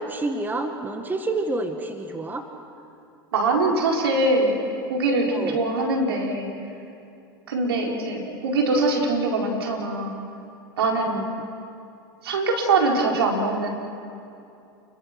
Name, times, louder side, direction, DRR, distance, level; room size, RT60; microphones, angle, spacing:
voice 1, 0.0-2.5 5.3-5.6 11.1-11.2, right 2 dB, 15° right, 5 dB, 1.9 m, -28 dB
voice 2, 3.3-4.6 4.9-6.5 7.5-10.1 10.8-11.2 12.2-13.7, right 2 dB, 80° right, 0 dB, 4.7 m, -23 dB
29.5 x 22.0 x 6.1 m, 2.6 s
hypercardioid pair, 95°, 13 cm